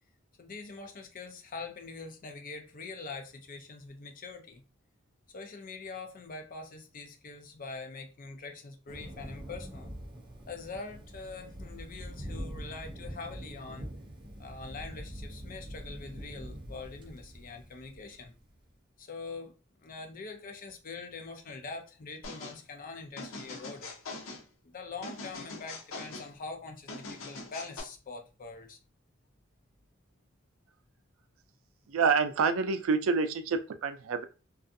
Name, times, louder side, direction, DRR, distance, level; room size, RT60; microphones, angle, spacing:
voice 1, 0.4-4.6 5.3-9.9 10.5-13.9 14.4-18.3 19.0-19.5 19.8-23.9 24.6-28.8, left 4 dB, 45° left, 0.5 m, -44 dB
Thunder, 8.9-18.5, equal, 25° right, 0.5 m, -44 dB
sound 1, 22.2-22.6 23.2-24.4 25.0-26.3 26.9-27.8, left 3 dB, 85° left, 0.7 m, -42 dB
voice 2, 31.9-34.2, right 5 dB, 85° right, 0.4 m, -27 dB
2.5 x 2.3 x 2.5 m
head